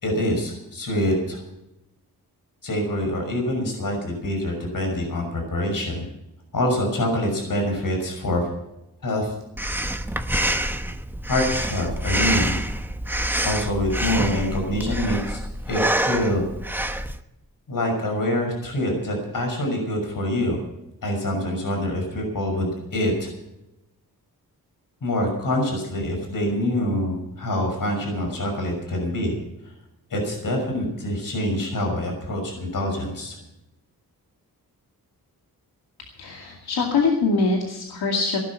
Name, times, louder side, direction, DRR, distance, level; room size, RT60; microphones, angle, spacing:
voice 1, 0.0-1.4 2.6-6.0 6.5-8.5 9.0-9.3 11.3-12.6 13.4-15.4 15.7-16.4 17.7-20.6 21.0-23.3 25.0-29.4 30.1-33.4, left 1 dB, 60° left, 2 dB, 6.2 m, -25 dB
Breathing, 9.6-17.2, right 1 dB, 5° right, 0.9 m, -26 dB
voice 2, 36.2-38.4, left 4 dB, 90° left, 0 dB, 2.4 m, -23 dB
17.5 x 11.5 x 5.9 m, 0.89 s
wide cardioid pair, 105°, 37 cm